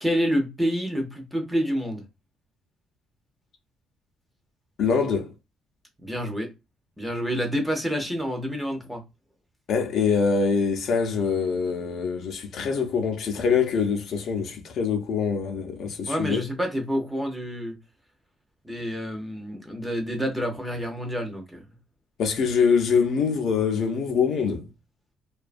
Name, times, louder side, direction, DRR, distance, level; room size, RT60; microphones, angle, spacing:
voice 1, 0.0-2.0 6.0-6.5 7.0-9.0 16.1-17.8 18.6-21.6, equal, 5° right, 0.5 m, -28 dB
voice 2, 4.8-5.3 9.7-16.4 22.2-24.6, left 5 dB, 50° left, 0.5 m, -24 dB
2.5 x 2.2 x 2.4 m
cardioid pair, 175°, 0 cm